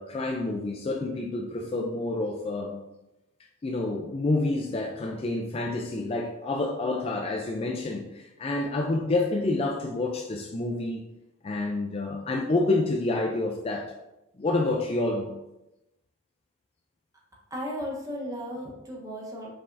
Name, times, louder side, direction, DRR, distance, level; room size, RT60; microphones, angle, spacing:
voice 1, 0.0-2.8 3.6-11.0 11.4-13.9 14.4-15.3, left 2 dB, 30° left, 1 dB, 0.4 m, -28 dB
voice 2, 17.5-19.5, equal, 15° right, -2 dB, 0.9 m, -35 dB
5.5 x 3.4 x 2.6 m, 0.93 s
head